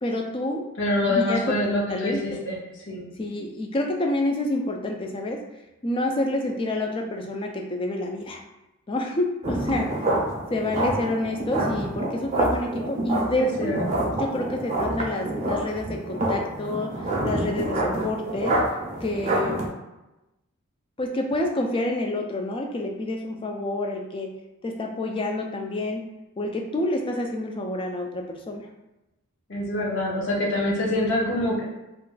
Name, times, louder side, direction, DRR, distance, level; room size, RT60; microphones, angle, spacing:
voice 1, 0.0-0.6 1.0-2.4 3.2-8.4 8.9-9.9 10.5-13.8 14.2-18.6 19.0-19.7 21.0-24.4 24.6-26.1 26.4-28.7, left 1 dB, 25° left, 2 dB, 0.3 m, -28 dB
voice 2, 0.8-2.6 2.9-3.1 13.4-14.0 29.5-31.6, left 1 dB, 55° left, -4 dB, 0.8 m, -25 dB
sound 1, 9.4-19.7, right 1 dB, 30° right, 0.5 m, -27 dB
2.4 x 2.2 x 3.8 m, 0.98 s
head